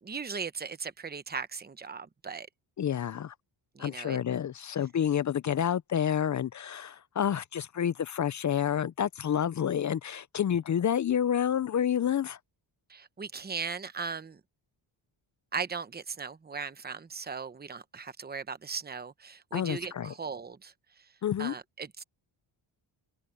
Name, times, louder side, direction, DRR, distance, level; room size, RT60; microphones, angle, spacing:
voice 1, 0.0-2.5 3.7-4.2 12.9-14.4 15.5-21.1 21.4-22.0, right 5 dB, 20° right, 0.9 m, -38 dB
voice 2, 2.8-3.3 3.8-12.4 19.5-20.1 21.2-21.5, left 9 dB, 40° left, 0.4 m, -29 dB
open air
wide cardioid pair, 130°, 47 cm